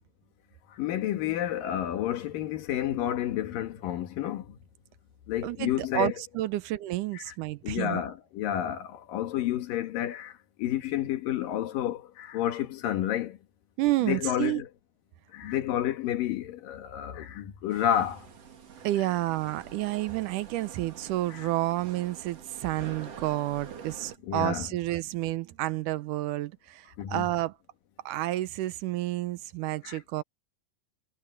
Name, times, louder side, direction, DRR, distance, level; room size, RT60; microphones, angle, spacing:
voice 1, 0.7-4.6 5.3-6.1 7.1-7.3 7.6-13.4 14.0-14.7 15.3-18.3 21.3-21.5 24.2-24.7 27.0-27.3 29.8-30.0, left 11 dB, 80° left, 3.2 m, -30 dB
voice 2, 5.4-8.0 13.8-14.6 18.8-27.6 28.1-30.2, right 16 dB, 75° right, 2.1 m, -30 dB
sound 1, 17.7-24.2, right 6 dB, 50° right, 3.3 m, -47 dB
omnidirectional pair, 3.9 m